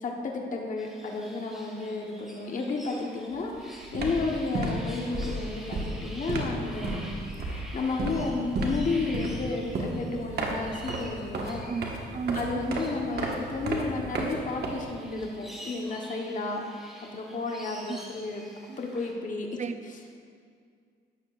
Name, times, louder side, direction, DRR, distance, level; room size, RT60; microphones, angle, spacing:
voice 1, 0.0-11.7 12.3-16.6 17.0-18.4 18.8-19.5 19.9-20.1, left 3 dB, 40° left, 0 dB, 1.1 m, -32 dB
sound 1, 0.8-19.1, equal, ahead, 2.4 m, -48 dB
sound 2, 3.3-3.6 3.8-15.2, right 2 dB, 55° right, 1.5 m, -33 dB
voice 2, 11.7-12.6 17.9-18.0 18.7-18.8 19.6-19.7, right 5 dB, 35° right, 10 dB, 0.5 m, -33 dB
12.5 x 9.0 x 2.5 m, 2.2 s
cardioid pair, 90°, 20 cm